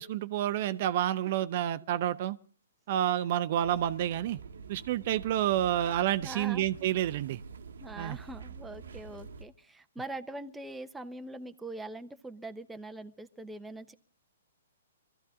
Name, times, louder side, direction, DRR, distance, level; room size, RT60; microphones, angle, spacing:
voice 1, 0.0-2.4 2.9-4.4 4.7-7.4 8.0-8.2, right 12 dB, 50° right, 0.7 m, -29 dB
sound 1, 3.6-9.4, right 5 dB, 75° right, 1.2 m, -46 dB
voice 2, 6.2-6.7 7.8-13.9, right 2 dB, 5° right, 0.8 m, -42 dB
23.0 x 14.0 x 3.6 m
hypercardioid pair, 135°, 0 cm